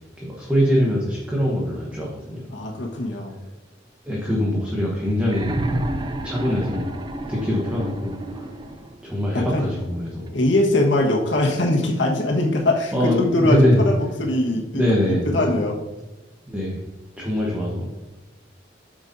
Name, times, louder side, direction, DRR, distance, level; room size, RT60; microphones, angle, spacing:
voice 1, 0.2-2.5 4.0-5.5 6.2-6.9 7.3-8.5 9.0-10.3 12.9-13.9 14.7-15.5 16.5-16.8 17.2-17.9, equal, 5° right, -4 dB, 1.1 m, -23 dB
voice 2, 2.5-3.3 9.3-9.7 10.3-15.8, left 1 dB, 85° left, -1 dB, 1.4 m, -22 dB
sound 1, 5.2-9.1 10.3-10.4, right 1 dB, 25° right, 0.5 m, -30 dB
8.8 x 6.3 x 2.7 m, 1.2 s
head